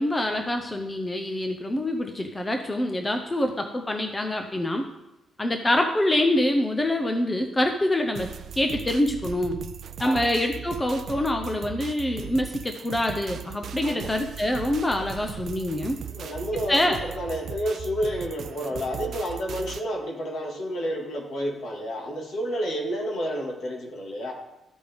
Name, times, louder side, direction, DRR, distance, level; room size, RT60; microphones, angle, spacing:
voice 1, 0.0-4.8 5.4-9.6 10.0-16.0 16.5-17.0, left 1 dB, 15° left, 4 dB, 0.6 m, -25 dB
sound 1, 8.1-19.8, right 8 dB, 55° right, 0.3 m, -38 dB
voice 2, 10.0-10.3 13.8-14.2 16.1-24.3, equal, 65° left, 0 dB, 1.9 m, -30 dB
13.5 x 5.2 x 3.5 m, 0.95 s
cardioid pair, 155°, 0 cm